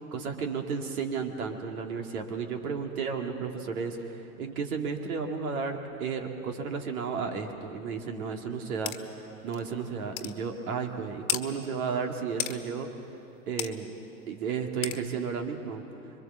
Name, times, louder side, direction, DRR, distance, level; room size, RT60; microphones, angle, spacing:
voice 1, 0.1-12.9 13.5-13.9 14.3-15.8, right 5 dB, 65° right, 4 dB, 2.5 m, -33 dB
sound 1, 8.9-9.0 9.5-9.6 10.2-10.3 11.3-11.4 12.4-12.6 13.6-13.7 14.8-15.0, left 11 dB, 65° left, 1.5 m, -31 dB
26.0 x 23.0 x 7.1 m, 2.9 s
figure-of-eight pair, 95°, 46 cm